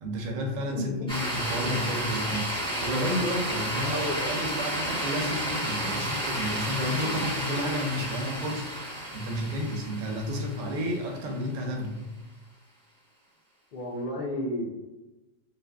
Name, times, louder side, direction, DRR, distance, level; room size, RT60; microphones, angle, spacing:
voice 1, 0.0-12.1, equal, 80° right, 2 dB, 1.0 m, -31 dB
voice 2, 0.7-1.3 3.8-4.3 13.7-14.7, left 1 dB, 70° left, -6 dB, 0.4 m, -32 dB
sound 1, 1.1-11.4, right 1 dB, 5° left, 0.6 m, -32 dB
2.7 x 2.4 x 2.2 m, 1.1 s
omnidirectional pair, 1.4 m